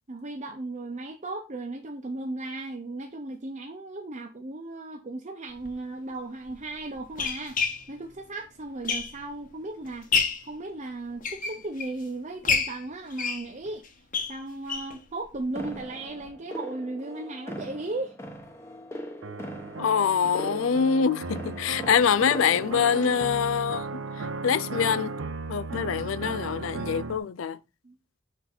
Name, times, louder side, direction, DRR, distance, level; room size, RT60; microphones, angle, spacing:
voice 1, 0.1-7.6 7.9-10.1 10.4-13.8 14.3-18.2 27.8-28.0, right 2 dB, 35° right, 0.8 m, -36 dB
sound 1, 5.6-5.7 6.5-9.4 9.8-10.5 11.0-12.0 12.4-15.0 15.3-15.4 15.7-15.8 16.2-16.3, left 5 dB, 45° left, 1.1 m, -29 dB
sound 2, 15.5-23.2, equal, 15° left, 1.1 m, -40 dB
sound 3, 19.2-27.2, right 3 dB, 85° right, 0.6 m, -36 dB
voice 2, 19.8-24.0 24.4-25.1 25.5-27.6, left 7 dB, 85° left, 0.4 m, -25 dB
6.0 x 4.4 x 4.0 m
head